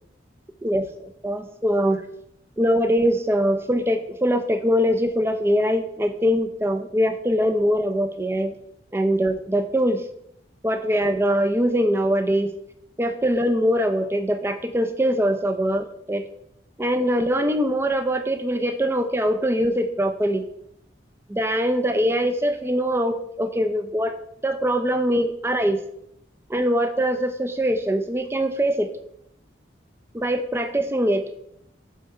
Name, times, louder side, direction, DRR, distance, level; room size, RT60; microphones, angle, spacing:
voice 1, 1.2-2.0 2.6-8.6 8.9-10.0 10.6-12.5 13.0-16.3 16.8-20.5 21.3-24.1 24.4-25.8 26.5-28.9 30.1-31.3, equal, 15° right, 8 dB, 0.4 m, -22 dB
7.9 x 3.2 x 4.6 m, 0.75 s
head